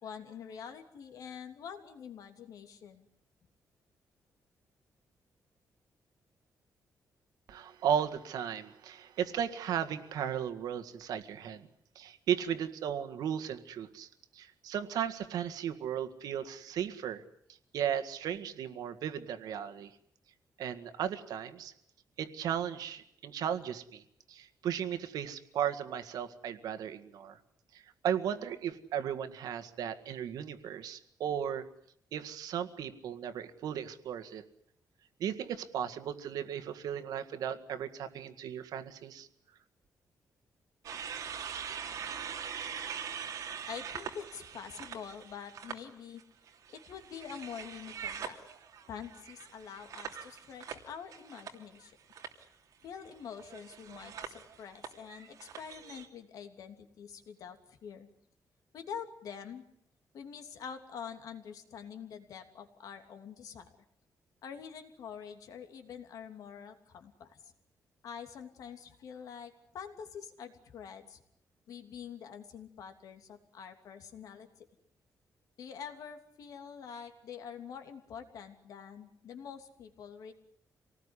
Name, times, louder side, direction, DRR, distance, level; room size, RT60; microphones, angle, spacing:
voice 1, 0.0-3.0 43.7-46.2 46.7-48.4 48.9-52.0 52.8-58.1 58.7-59.6 60.1-63.7 64.4-67.5 68.0-71.2 71.7-74.7 75.6-80.3, left 7 dB, 70° left, 6 dB, 3.0 m, -46 dB
voice 2, 7.5-11.7 12.0-17.2 17.7-19.9 20.6-21.7 22.2-24.0 24.3-27.4 27.7-31.7 32.1-34.4 35.2-39.3, right 9 dB, 90° right, 9 dB, 1.8 m, -35 dB
sound 1, 40.8-45.8 46.2-51.9 52.1-52.4 53.3-56.1, right 7 dB, 65° right, 3.0 m, -43 dB
26.5 x 19.0 x 9.9 m, 0.70 s
wide cardioid pair, 175°, 6 cm